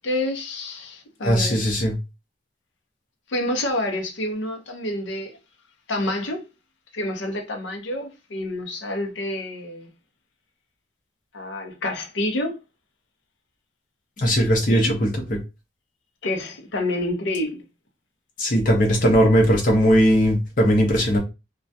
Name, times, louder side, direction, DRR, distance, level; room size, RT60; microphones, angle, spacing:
voice 1, 0.0-1.6 3.3-5.4 5.9-6.4 6.9-9.9 11.3-12.6 14.7-15.0 16.2-17.6, left 1 dB, 80° left, 0.6 m, -28 dB
voice 2, 1.2-2.0 14.2-15.4 18.4-21.2, equal, 45° left, 0.8 m, -19 dB
2.3 x 2.1 x 2.5 m
head